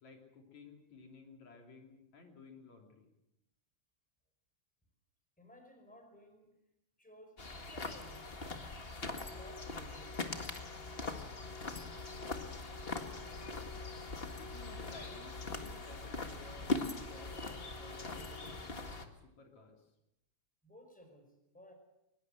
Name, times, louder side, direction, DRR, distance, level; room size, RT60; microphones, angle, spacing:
voice 1, 0.0-3.1 14.2-16.7 17.0-19.9, left 4 dB, 65° left, 2 dB, 4.3 m, -55 dB
voice 2, 5.4-6.6 7.0-8.4 9.2-10.3 20.6-21.7, equal, ahead, 5 dB, 4.9 m, -58 dB
sound 1, 7.4-19.0, left 3 dB, 25° left, 1.4 m, -41 dB
23.0 x 21.5 x 7.8 m, 0.86 s
omnidirectional pair, 3.5 m